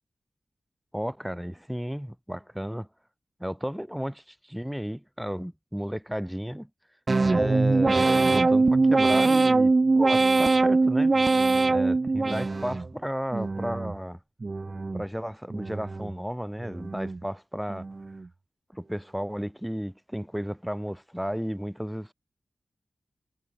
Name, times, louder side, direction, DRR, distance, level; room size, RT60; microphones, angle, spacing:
voice 1, 0.9-2.9 3.4-6.7 7.2-11.1 11.7-14.2 14.9-17.9 18.7-22.1, equal, 5° right, 3.2 m, -33 dB
sound 1, 7.1-12.9 13.3-14.0 14.4-15.1 15.5-16.1 16.6-17.2 17.7-18.2, right 3 dB, 45° right, 0.9 m, -23 dB
cardioid pair, 60°, 0 cm